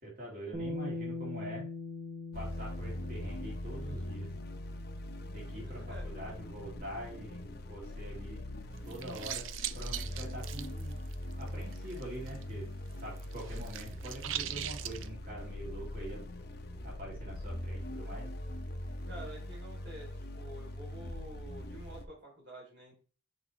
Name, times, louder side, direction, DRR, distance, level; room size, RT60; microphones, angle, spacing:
voice 1, 0.0-1.7 2.3-4.3 5.3-8.4 8.8-9.4 9.7-10.9 11.4-12.7 13.0-16.2 16.8-18.2, right 1 dB, 45° right, -3 dB, 2.4 m, -44 dB
Bass guitar, 0.5-6.8, left 3 dB, 30° right, 1.4 m, -43 dB
sound 1, 2.3-22.0, left 1 dB, 55° left, 0.7 m, -42 dB
voice 2, 5.6-6.0 19.1-20.1 20.4-23.0, right 1 dB, 65° right, -2 dB, 3.2 m, -49 dB
sound 2, 8.8-12.5 12.7-15.1, right 12 dB, 85° right, 0.4 m, -41 dB
6.3 x 4.9 x 3.1 m, 0.39 s
head